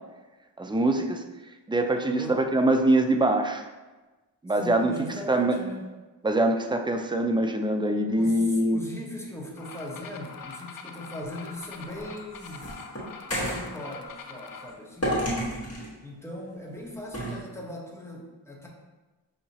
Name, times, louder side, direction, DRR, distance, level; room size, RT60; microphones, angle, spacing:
voice 1, 0.6-1.2 1.7-3.6 4.4-4.9 5.3-5.6 6.2-8.8, right 1 dB, 10° right, 5 dB, 0.3 m, -23 dB
voice 2, 2.1-2.4 4.6-5.8 8.1-12.7 13.3-15.2 16.0-18.7, left 1 dB, 5° left, -2 dB, 0.9 m, -39 dB
sound 1, 9.6-14.7, left 5 dB, 50° left, 0.5 m, -43 dB
sound 2, 11.8-13.7 15.0-15.9 17.1-17.4, equal, 30° left, 1.5 m, -30 dB
5.5 x 2.9 x 2.8 m, 1.2 s
cardioid pair, 50°, 45 cm